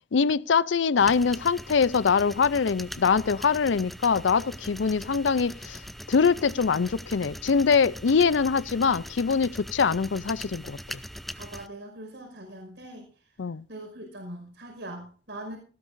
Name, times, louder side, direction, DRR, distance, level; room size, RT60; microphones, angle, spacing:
voice 1, 0.1-5.8 6.1-10.8 13.4-13.6, left 5 dB, 85° left, 0.5 m, -23 dB
sound 1, 1.0-11.7, equal, ahead, 0.5 m, -41 dB
voice 2, 11.3-13.1 13.7-15.6, right 1 dB, 80° right, 5.2 m, -41 dB
18.5 x 15.5 x 2.6 m
head